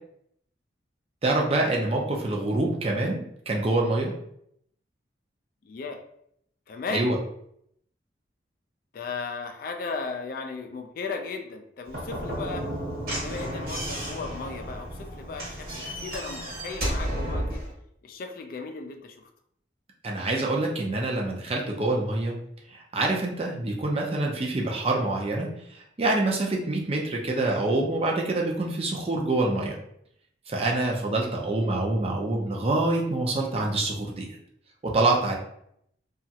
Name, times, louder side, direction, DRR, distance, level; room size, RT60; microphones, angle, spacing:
voice 1, 1.2-4.1 6.9-7.2 20.0-22.4 22.7-25.5 26.0-29.8 30.5-34.3 34.8-35.3, right 2 dB, 30° right, -1 dB, 0.5 m, -26 dB
voice 2, 5.6-6.0 6.7-7.1 8.9-12.6 13.2-17.6 18.0-19.3, left 4 dB, 50° left, 4 dB, 0.3 m, -36 dB
Slam / Knock, 11.9-17.7, equal, 50° right, 1.2 m, -32 dB
2.9 x 2.4 x 2.7 m, 0.71 s
head